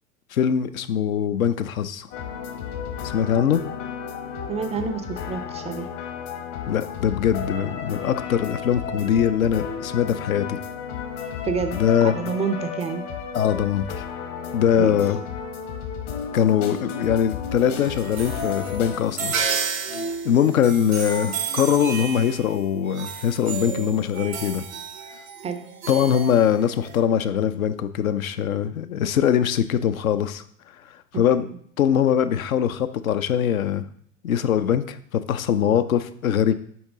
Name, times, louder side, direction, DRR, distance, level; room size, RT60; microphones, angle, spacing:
voice 1, 0.3-2.1 3.0-3.6 6.7-10.6 11.7-12.3 13.3-14.0 14.5-15.2 16.3-19.4 19.9-20.0 20.2-24.7 25.9-30.4 31.1-31.5 31.8-33.9 34.2-36.5, left 9 dB, 80° left, 11 dB, 0.6 m, -22 dB
sound 1, 2.1-19.0, left 7 dB, 60° left, 1.2 m, -33 dB
voice 2, 4.5-5.9 11.5-13.1 14.8-15.0 25.4-25.6 31.4-31.5 35.6-35.7, right 5 dB, 15° right, 9 dB, 0.4 m, -29 dB
sound 2, 17.5-27.0, right 5 dB, 90° right, 0.9 m, -32 dB
7.1 x 4.7 x 3.6 m, 0.62 s
figure-of-eight pair, 85°, 41 cm